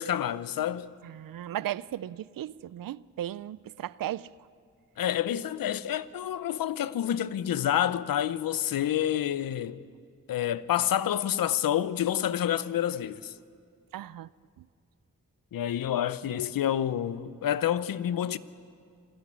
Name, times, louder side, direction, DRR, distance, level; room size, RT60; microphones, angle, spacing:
voice 1, 0.0-0.9 5.0-9.8 10.3-13.3 15.5-18.4, left 10 dB, 85° left, 0.7 m, -28 dB
voice 2, 1.0-4.3 13.9-14.3 14.6-14.7, right 12 dB, 80° right, 0.5 m, -36 dB
26.5 x 14.0 x 9.5 m
cardioid pair, 40°, 33 cm